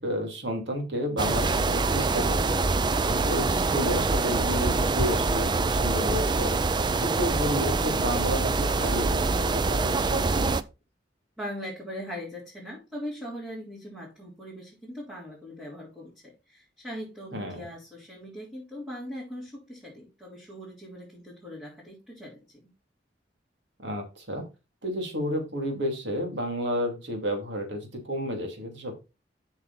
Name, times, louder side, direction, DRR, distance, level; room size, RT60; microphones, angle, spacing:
voice 1, 0.0-2.5 3.1-6.6 7.0-10.5 17.3-17.7 23.8-24.5 24.8-29.0, equal, 70° right, 3 dB, 2.8 m, -31 dB
sound 1, 1.2-10.6, right 3 dB, 25° right, 0.4 m, -25 dB
voice 2, 11.4-22.6, equal, 5° right, -7 dB, 3.5 m, -40 dB
7.8 x 6.3 x 4.2 m, 0.29 s
head